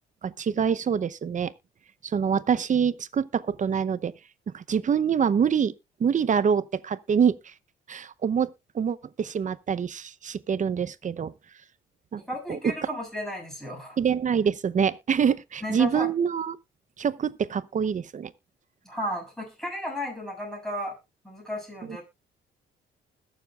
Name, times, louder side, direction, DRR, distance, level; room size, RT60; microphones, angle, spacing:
voice 1, 0.2-1.5 2.0-4.1 4.5-5.7 6.0-7.5 7.9-8.5 8.7-11.3 12.1-12.2 12.5-12.7 14.0-16.6 17.0-18.3, right 7 dB, 40° right, 0.7 m, -25 dB
voice 2, 12.2-14.0 15.6-16.1 18.8-20.9 21.2-22.0, equal, ahead, 7.3 m, -34 dB
21.0 x 7.2 x 2.4 m
cardioid pair, 90°, 20 cm